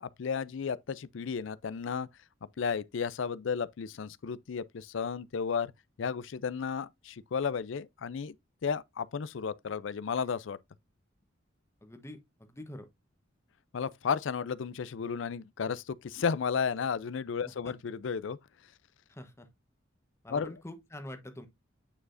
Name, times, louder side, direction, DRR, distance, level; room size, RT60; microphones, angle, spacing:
voice 1, 0.0-2.1 2.6-5.7 6.0-8.4 8.6-10.6 13.7-18.4 20.3-20.5, left 6 dB, 70° left, 0.4 m, -33 dB
voice 2, 11.8-12.9 17.4-17.7 19.1-19.5 20.2-21.5, left 1 dB, 15° left, 1.0 m, -45 dB
8.7 x 4.8 x 2.5 m
head